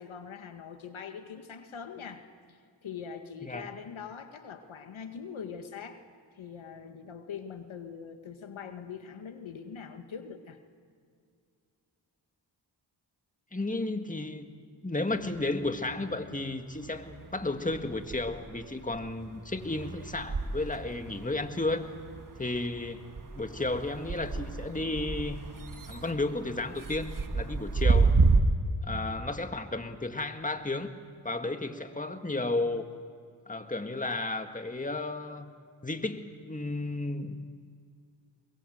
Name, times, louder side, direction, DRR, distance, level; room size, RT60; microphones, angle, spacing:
voice 1, 0.0-6.0 6.3-10.6 19.4-19.5 28.9-29.3, left 6 dB, 80° left, 7 dB, 1.7 m, -43 dB
voice 2, 13.5-14.5 14.8-21.9 22.4-23.0 23.4-25.4 25.9-28.1 28.8-30.9 31.2-32.9 33.5-35.6 35.8-37.4, left 2 dB, 15° left, 7 dB, 1.9 m, -33 dB
sound 1, 15.1-16.4 16.7-28.4, right 4 dB, 40° right, 1.8 m, -31 dB
23.0 x 22.0 x 7.9 m, 2.2 s
cardioid pair, 45°, 47 cm